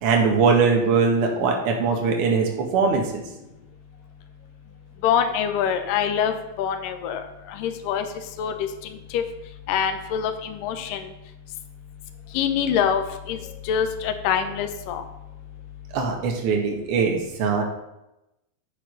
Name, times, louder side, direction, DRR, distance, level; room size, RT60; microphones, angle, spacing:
voice 1, 0.0-3.2 15.9-17.6, right 5 dB, 45° right, 2 dB, 1.8 m, -21 dB
voice 2, 5.0-7.2 7.5-8.0 8.4-8.5 9.1-9.2 9.7-11.1 12.3-13.0 13.3-15.0, left 8 dB, 45° left, 8 dB, 0.8 m, -24 dB
9.8 x 4.7 x 5.5 m, 0.92 s
figure-of-eight pair, 90°, 0 cm